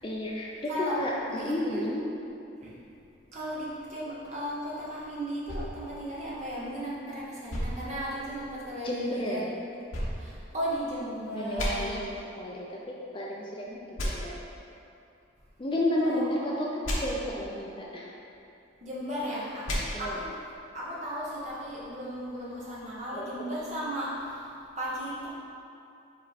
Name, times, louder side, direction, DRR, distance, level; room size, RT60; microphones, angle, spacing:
voice 1, 0.0-2.0 8.8-9.6 11.3-12.1 12.4-14.4 15.6-18.1 19.9-20.2 23.1-23.3, left 1 dB, 25° left, -3 dB, 0.4 m, -32 dB
voice 2, 0.7-1.0 1.3-1.8 2.6-2.7 3.3-9.4 10.2-12.0 16.0-16.7 18.8-20.3 20.7-25.3, equal, 35° right, -7 dB, 1.3 m, -35 dB
sound 1, 5.5-6.9 7.5-8.7 9.9-11.1 11.6-11.7 14.0-14.1 16.8-17.0 19.6-19.8, equal, 80° left, 1.1 m, -34 dB
5.2 x 4.5 x 4.1 m, 2.7 s
head